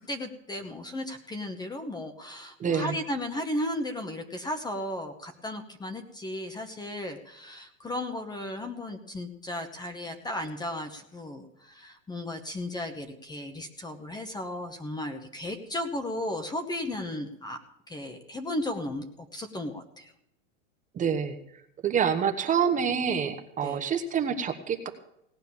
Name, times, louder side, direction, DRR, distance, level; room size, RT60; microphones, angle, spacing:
voice 1, 0.0-17.6 17.9-19.1 19.3-20.1 23.6-23.8, left 1 dB, 10° left, 7 dB, 1.0 m, -35 dB
voice 2, 2.6-3.0 20.9-24.9, right 7 dB, 20° right, 7 dB, 1.1 m, -27 dB
17.5 x 9.1 x 7.1 m, 0.78 s
supercardioid pair, 140°, 40 cm